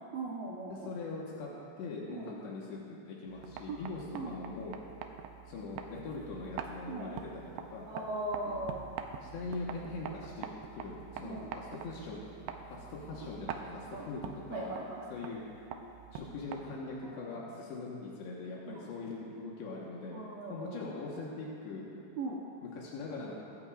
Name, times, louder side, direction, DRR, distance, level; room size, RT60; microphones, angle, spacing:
voice 1, 0.1-0.9 2.1-2.3 3.7-3.8 4.1-4.4 6.9-7.1 7.9-8.9 11.2-11.5 13.1-13.3 13.9-14.1 14.5-15.1 17.0-17.2 18.7-18.9 20.1-20.8 22.2-22.4, right 2 dB, 70° right, -4 dB, 2.4 m, -39 dB
voice 2, 0.7-1.5 1.8-4.8 5.5-7.9 8.4-8.6 9.2-12.2 12.7-14.7 15.1-15.4 16.1-20.2 20.5-21.9 22.6-23.3, left 3 dB, 80° left, -4 dB, 3.6 m, -42 dB
sound 1, 3.3-17.0, right 7 dB, 85° right, 2.1 m, -45 dB
23.0 x 11.5 x 2.5 m, 2.6 s
omnidirectional pair, 5.0 m